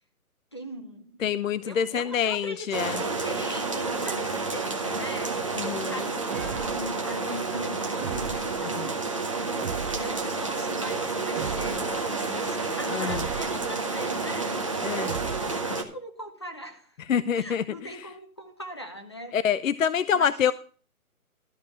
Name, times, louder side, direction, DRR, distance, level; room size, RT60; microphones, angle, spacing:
voice 1, 0.5-1.2 1.6-5.4 5.7-17.0 17.3-19.4 20.1-20.5, equal, 20° left, 5 dB, 0.6 m, -40 dB
voice 2, 1.2-3.0 5.6-5.9 8.8-8.9 12.9-13.2 14.8-15.1 17.1-17.6 19.3-20.5, left 8 dB, 65° left, 16 dB, 0.5 m, -26 dB
sound 1, 2.7-15.8, right 3 dB, 20° right, 0.7 m, -30 dB
sound 2, 6.3-7.0 8.0-8.6 9.6-10.3 11.3-12.0 13.0-13.7 15.0-15.7, right 8 dB, 60° right, 0.5 m, -37 dB
12.5 x 5.0 x 6.8 m, 0.41 s
hypercardioid pair, 165°, 44 cm